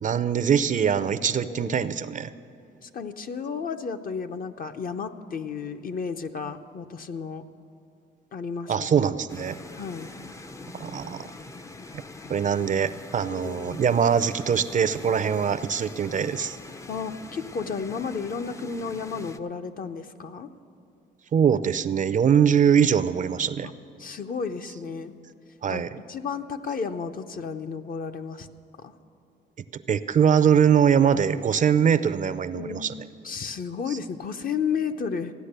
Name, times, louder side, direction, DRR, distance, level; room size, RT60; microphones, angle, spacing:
voice 1, 0.0-2.3 8.7-9.6 10.7-11.3 11.9-12.0 12.3-16.6 21.3-23.7 25.6-25.9 29.9-32.9, right 7 dB, 40° right, 14 dB, 0.5 m, -22 dB
voice 2, 1.4-1.9 2.8-7.4 8.3-8.9 9.8-10.1 12.6-12.7 13.3-13.9 16.9-20.5 24.0-25.1 25.7-28.5 28.8-28.9 32.5-32.9 33.2-35.3, left 5 dB, 45° left, 8 dB, 0.7 m, -33 dB
sound 1, 9.3-19.4, left 3 dB, 15° left, 0.5 m, -43 dB
15.0 x 9.6 x 6.7 m, 2.7 s
cardioid pair, 90°, 20 cm